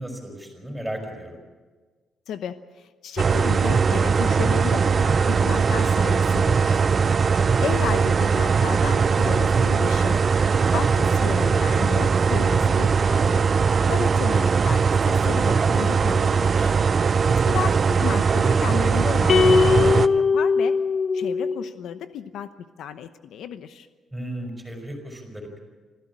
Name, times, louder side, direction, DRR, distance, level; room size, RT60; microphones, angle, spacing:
voice 1, 0.0-1.4 17.0-17.5 24.1-25.6, right 1 dB, 5° right, 3 dB, 5.3 m, -35 dB
voice 2, 2.3-7.0 7.6-10.2 10.7-13.5 13.8-16.7 17.5-20.8 21.1-22.5 22.8-23.9, left 8 dB, 70° left, 10 dB, 0.9 m, -33 dB
sound 1, 3.2-20.1, right 5 dB, 35° right, 0.6 m, -20 dB
sound 2, 19.3-21.8, left 5 dB, 40° left, 1.0 m, -20 dB
25.5 x 15.0 x 8.6 m, 1.4 s
cardioid pair, 140°, 0 cm